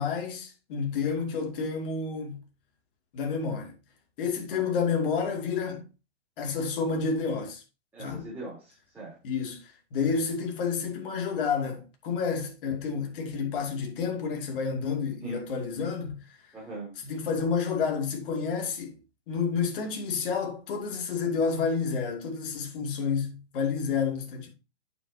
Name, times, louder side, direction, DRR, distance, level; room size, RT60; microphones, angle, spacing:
voice 1, 0.0-2.4 3.1-3.7 4.2-5.9 6.4-7.6 8.0-8.3 9.2-16.4 17.0-19.0 19.3-24.5, left 5 dB, 50° left, 2.6 m, -30 dB
voice 2, 7.9-9.2 15.2-15.4 16.5-16.9, right 1 dB, 5° right, 3.7 m, -40 dB
8.6 x 7.2 x 2.8 m
hypercardioid pair, 155°, 34 cm